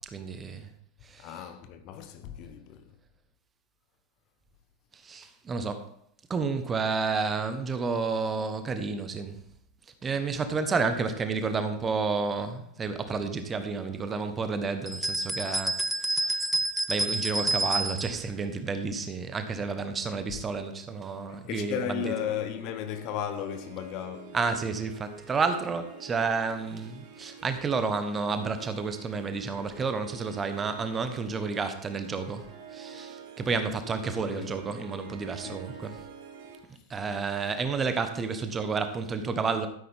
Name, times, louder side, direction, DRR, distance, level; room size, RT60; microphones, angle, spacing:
voice 1, 0.1-0.7 1.0-1.4 4.9-5.9 6.3-9.4 10.0-16.4 16.9-22.2 24.3-36.0 36.9-39.7, right 4 dB, 20° right, 1.3 m, -31 dB
voice 2, 1.2-2.9 18.9-19.1 21.3-24.4 34.4-34.5 35.4-35.6, left 9 dB, 40° left, 1.2 m, -35 dB
sound 1, 14.9-18.2, right 2 dB, 5° right, 0.5 m, -29 dB
Harp, 21.7-36.6, right 6 dB, 45° right, 2.2 m, -48 dB
12.5 x 10.0 x 3.6 m
figure-of-eight pair, 90°, 0 cm